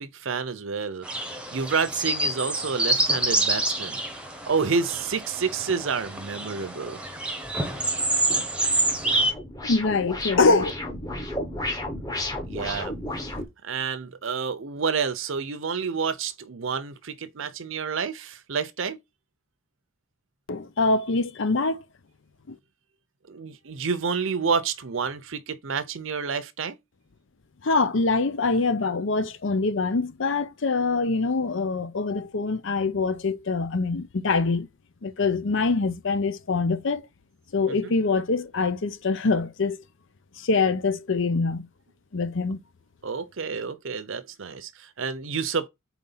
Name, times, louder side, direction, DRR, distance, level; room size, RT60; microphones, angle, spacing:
voice 1, 0.0-4.0 4.4-7.0 12.5-12.9 13.6-19.0 23.3-26.8 37.7-37.9 43.0-45.7, right 5 dB, 65° right, 0.7 m, -29 dB
sound 1, 1.0-9.3, right 2 dB, 5° right, 1.0 m, -27 dB
sound 2, 8.5-13.4, left 1 dB, 20° left, 1.2 m, -33 dB
voice 2, 9.6-10.7 20.5-21.8 22.5-22.6 27.6-34.7 35.0-37.0 37.5-39.8 40.4-41.7 42.1-42.6, left 3 dB, 65° left, 0.7 m, -24 dB
4.2 x 4.0 x 5.6 m
head